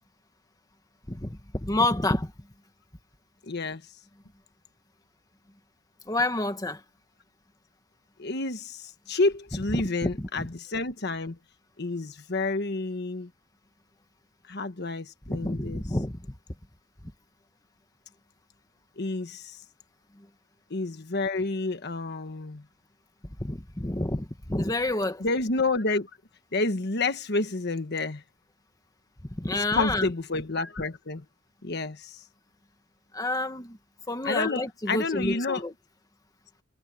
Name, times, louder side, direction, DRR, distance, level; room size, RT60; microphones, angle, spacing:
voice 1, 1.1-2.3 6.1-6.8 9.7-10.3 15.3-16.2 20.2-20.3 23.4-25.2 29.3-30.1 33.1-33.8 34.1-35.7, left 2 dB, 20° left, 1.6 m, -29 dB
voice 2, 3.5-3.8 8.2-11.4 11.8-13.3 14.5-15.8 19.0-19.6 20.7-22.6 25.2-26.1 26.5-28.2 29.5-31.2 31.6-32.2 34.2-35.7, left 3 dB, 60° left, 1.3 m, -29 dB
head